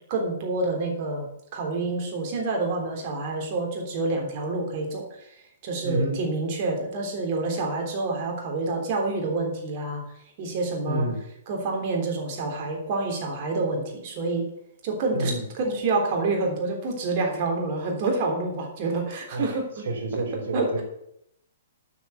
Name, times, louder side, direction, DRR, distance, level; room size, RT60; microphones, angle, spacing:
voice 1, 0.1-1.3 1.5-5.1 5.6-10.0 10.4-11.1 11.5-14.5 14.8-19.8 20.5-20.8, right 3 dB, 40° right, 1 dB, 3.4 m, -27 dB
voice 2, 5.8-6.2 10.9-11.2 15.1-15.5 19.3-19.6 19.8-20.8, right 2 dB, 70° right, 2 dB, 3.6 m, -28 dB
9.4 x 6.3 x 8.0 m, 0.76 s
hypercardioid pair, 145°, 0 cm